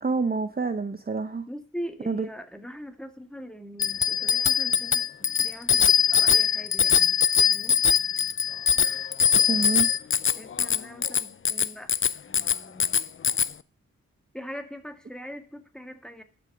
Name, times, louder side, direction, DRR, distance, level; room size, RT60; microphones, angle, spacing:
voice 1, 0.0-1.4 2.1-2.3 9.5-9.9, right 4 dB, 30° right, 0.7 m, -27 dB
voice 2, 1.5-7.8 10.4-11.9 12.3-12.9 14.3-16.2, equal, ahead, 1.8 m, -41 dB
Bicycle bell, 3.8-13.5, left 8 dB, 40° left, 0.5 m, -22 dB
11.5 x 6.2 x 5.9 m
cardioid pair, 70°, 31 cm